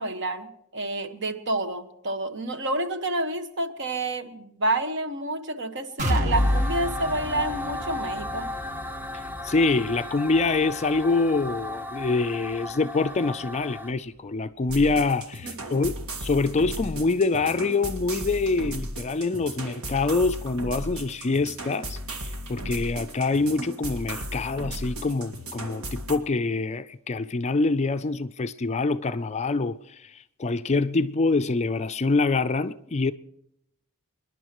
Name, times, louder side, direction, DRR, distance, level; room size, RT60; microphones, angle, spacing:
voice 1, 0.0-8.5 15.4-15.9, right 2 dB, 55° right, 1.4 m, -29 dB
sound 1, 6.0-13.8 14.2-14.3 14.7-14.8, left 1 dB, 35° right, 1.8 m, -31 dB
sound 2, 6.3-13.9, left 2 dB, 10° right, 0.7 m, -35 dB
voice 2, 9.1-22.0 22.5-33.1, left 3 dB, 30° left, 0.4 m, -25 dB
sound 3, 14.7-26.2, right 1 dB, 70° right, 1.9 m, -36 dB
28.5 x 11.0 x 3.0 m
head